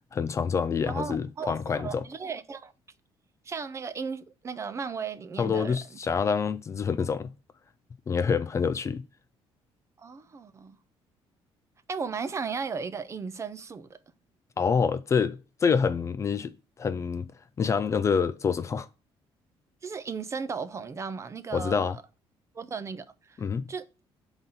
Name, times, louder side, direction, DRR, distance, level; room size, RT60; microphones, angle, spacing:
voice 1, 0.1-2.1 5.4-7.3 8.1-9.0 14.6-16.5 16.8-17.3 17.6-18.9 21.5-22.0 23.4-23.7, left 6 dB, 30° left, 0.4 m, -27 dB
voice 2, 0.9-2.7 3.5-5.8 10.0-10.8 11.9-14.0 19.8-22.0 22.5-23.4 23.7-23.9, right 5 dB, 30° right, 0.5 m, -35 dB
5.8 x 4.0 x 5.4 m
cardioid pair, 135°, 10 cm